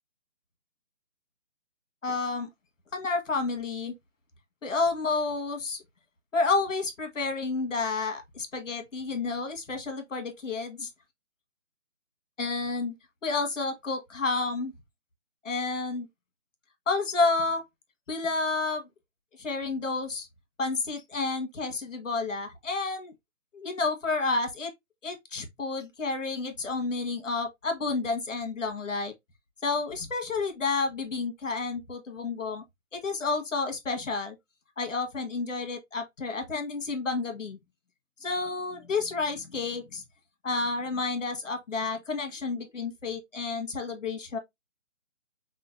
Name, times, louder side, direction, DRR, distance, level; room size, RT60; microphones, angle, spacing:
voice 1, 2.0-2.5 2.9-3.9 4.6-5.8 6.3-10.9 12.4-12.9 13.2-14.7 15.4-16.1 16.9-17.6 18.1-18.9 19.4-20.3 20.6-23.1 23.5-24.7 25.0-29.1 29.6-32.6 32.9-34.3 34.8-37.6 38.2-40.0 40.4-44.4, left 3 dB, 70° left, 1.6 m, -30 dB
5.6 x 2.6 x 2.6 m
hypercardioid pair, 165°, 39 cm